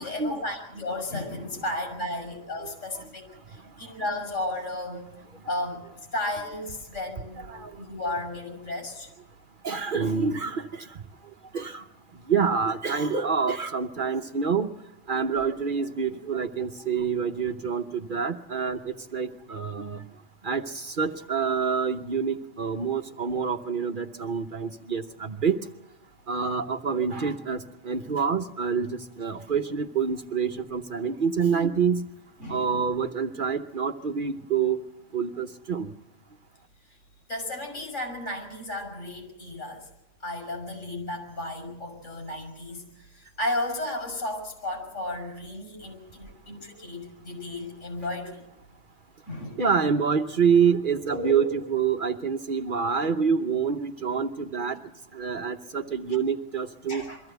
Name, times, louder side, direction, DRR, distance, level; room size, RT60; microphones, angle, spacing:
voice 1, 0.0-5.1 5.5-5.8 6.1-9.1 32.4-32.8 37.3-39.9 40.2-48.4 49.3-49.6 51.1-51.5 56.9-57.2, left 1 dB, 80° left, 2 dB, 6.8 m, -34 dB
voice 2, 2.6-3.0 7.5-7.7 9.6-10.9 11.5-11.8 12.3-14.7 15.1-20.0 20.4-25.7 26.3-32.1 32.5-34.8 35.1-35.9 49.6-54.8 55.1-57.0, right 6 dB, 45° right, 6 dB, 1.0 m, -27 dB
23.0 x 15.0 x 8.0 m, 0.94 s
omnidirectional pair, 1.3 m